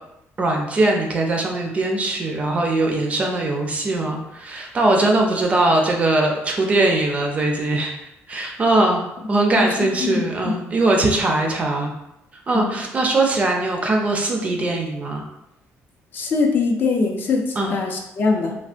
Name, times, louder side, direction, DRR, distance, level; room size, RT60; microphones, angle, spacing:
voice 1, 0.4-7.9 8.3-11.9 12.5-15.2 17.6-17.7, right 2 dB, 25° right, 1 dB, 0.4 m, -21 dB
voice 2, 10.0-10.5 12.5-12.7 16.1-18.6, left 4 dB, 40° left, 2 dB, 0.4 m, -22 dB
3.3 x 2.1 x 2.4 m, 0.85 s
cardioid pair, 165°, 5 cm